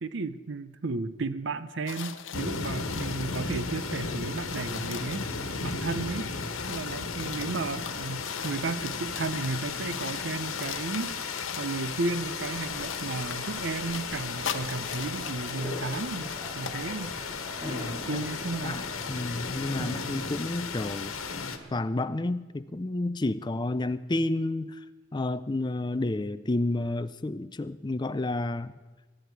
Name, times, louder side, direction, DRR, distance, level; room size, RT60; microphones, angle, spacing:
voice 1, 0.0-5.2 5.6-6.3 6.7-17.1 18.0-18.9 19.8-20.3, right 3 dB, 60° right, 14 dB, 0.6 m, -34 dB
sound 1, 1.9-3.5 4.0-4.1 4.3-9.6 9.9-12.0 12.4-16.8, left 7 dB, 65° left, 0.9 m, -41 dB
sound 2, 2.3-21.6, left 4 dB, 85° left, 1.3 m, -35 dB
sound 3, 11.8-20.0, equal, 20° right, 3.1 m, -43 dB
voice 2, 17.6-18.3 18.6-21.1 21.7-24.8 25.1-28.7, left 2 dB, 20° left, 12 dB, 0.4 m, -30 dB
22.5 x 10.0 x 4.7 m, 1.2 s
head